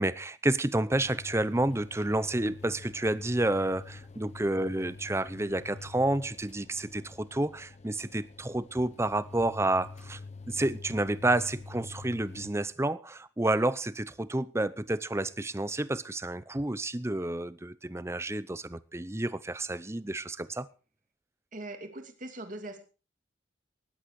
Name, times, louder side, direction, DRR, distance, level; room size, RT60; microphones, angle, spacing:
voice 1, 0.0-10.2 10.5-20.7, right 1 dB, 15° right, 0.7 m, -30 dB
sound 1, 1.0-12.5, left 3 dB, 35° left, 0.8 m, -47 dB
voice 2, 21.5-22.8, right 2 dB, 45° right, 2.6 m, -41 dB
18.5 x 11.5 x 4.8 m
head